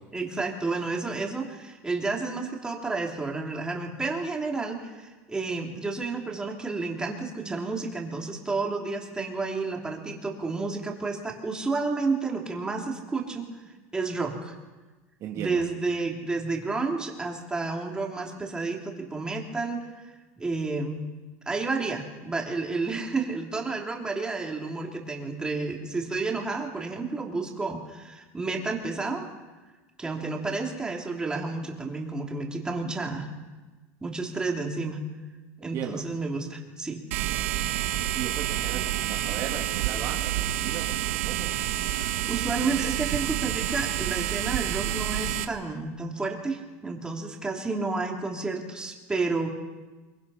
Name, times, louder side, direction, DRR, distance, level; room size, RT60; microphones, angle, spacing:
voice 1, 0.1-14.5 15.3-19.9 20.4-21.0 21.5-29.3 30.0-33.3 34.0-35.0 35.6-37.0 41.5-41.7 42.3-49.5, right 3 dB, 10° right, 0 dB, 3.1 m, -31 dB
voice 2, 15.2-15.6 35.6-36.0 38.2-40.9 41.3-41.5, right 9 dB, 45° right, 1 dB, 2.1 m, -36 dB
sound 1, 37.1-45.4, right 13 dB, 85° right, 1.5 m, -28 dB
24.0 x 23.0 x 5.7 m, 1.2 s
supercardioid pair, 140°, 7 cm